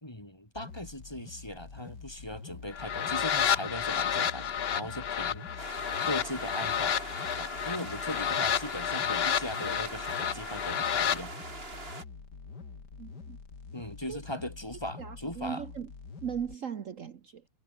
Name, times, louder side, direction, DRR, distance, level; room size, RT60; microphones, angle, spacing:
voice 1, 0.0-5.8 6.0-7.0 7.3-11.3 13.7-15.7, left 1 dB, 15° left, 3.4 m, -39 dB
sound 1, 0.6-16.6, left 4 dB, 75° left, 3.5 m, -46 dB
sound 2, 2.7-11.2, left 8 dB, 50° left, 0.9 m, -30 dB
sound 3, 5.6-12.0, right 2 dB, 35° right, 3.7 m, -43 dB
voice 2, 13.0-13.4 14.1-14.2 15.0-15.9 16.2-17.4, right 8 dB, 55° right, 1.4 m, -38 dB
omnidirectional pair, 1.8 m